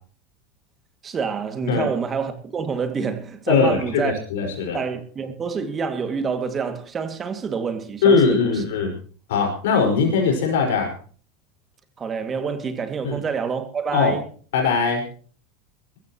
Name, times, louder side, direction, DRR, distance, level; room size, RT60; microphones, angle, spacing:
voice 1, 1.0-4.1 4.7-8.6 12.0-14.2, right 5 dB, 30° right, 2.3 m, -27 dB
voice 2, 3.5-4.8 8.0-8.9 9.3-10.9 13.0-13.2 13.9-14.1 14.5-15.0, left 5 dB, 75° left, 5.3 m, -20 dB
21.5 x 14.5 x 3.1 m
hypercardioid pair, 95°, 0 cm